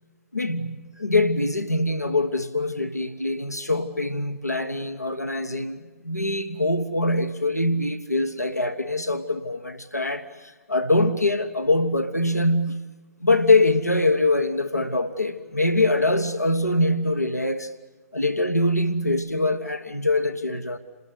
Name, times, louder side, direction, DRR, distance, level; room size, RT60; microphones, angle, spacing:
voice 1, 0.3-12.8 13.2-17.7 18.1-20.8, left 2 dB, 90° left, 6 dB, 1.4 m, -23 dB
29.0 x 20.5 x 8.2 m, 1.3 s
figure-of-eight pair, 120°, 8 cm